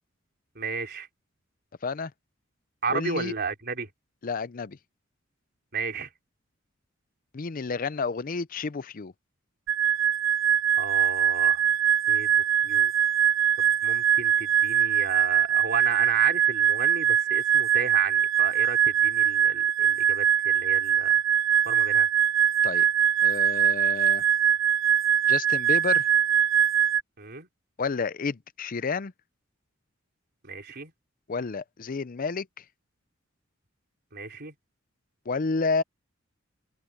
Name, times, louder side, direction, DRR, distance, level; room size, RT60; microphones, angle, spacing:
voice 1, 0.6-1.1 2.8-3.9 5.7-6.1 10.8-11.7 12.1-12.9 13.6-21.1 21.5-22.1 27.2-27.5 30.4-30.9 34.1-34.5, right 5 dB, 55° right, 4.0 m, -33 dB
voice 2, 2.9-3.3 4.2-4.8 7.3-9.1 22.6-22.9 23.2-24.2 25.3-26.1 27.8-29.1 31.3-32.6 35.3-35.8, left 4 dB, 45° left, 0.5 m, -30 dB
sound 1, 9.7-27.0, right 9 dB, 70° right, 0.5 m, -22 dB
head